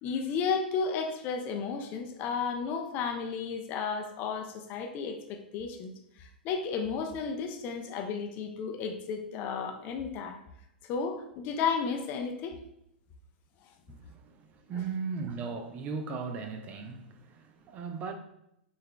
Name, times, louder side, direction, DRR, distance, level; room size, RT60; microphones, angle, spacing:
voice 1, 0.0-5.9 6.2-10.4 10.9-12.6, left 5 dB, 35° left, 0.5 m, -33 dB
voice 2, 13.9-18.1, right 5 dB, 30° right, 0.6 m, -37 dB
5.5 x 3.4 x 2.2 m
figure-of-eight pair, 100°, 5 cm